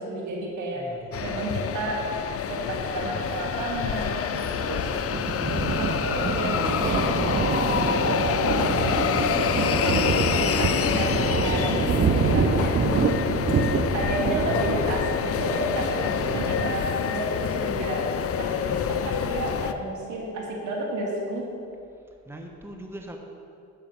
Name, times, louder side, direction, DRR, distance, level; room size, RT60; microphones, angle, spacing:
voice 1, 0.0-0.8 1.2-2.0 2.5-4.9 5.8-12.8 13.9-18.1 18.4-21.5, right 2 dB, 75° right, -1 dB, 2.3 m, -31 dB
voice 2, 0.7-1.6 19.2-19.9 22.3-23.2, right 1 dB, 10° right, 2 dB, 1.2 m, -43 dB
sound 1, 1.1-19.7, left 8 dB, 50° left, 0.6 m, -27 dB
Thunder, 4.4-16.7, right 5 dB, 35° right, 0.7 m, -27 dB
10.5 x 5.7 x 7.5 m, 2.5 s
cardioid pair, 90°, 30 cm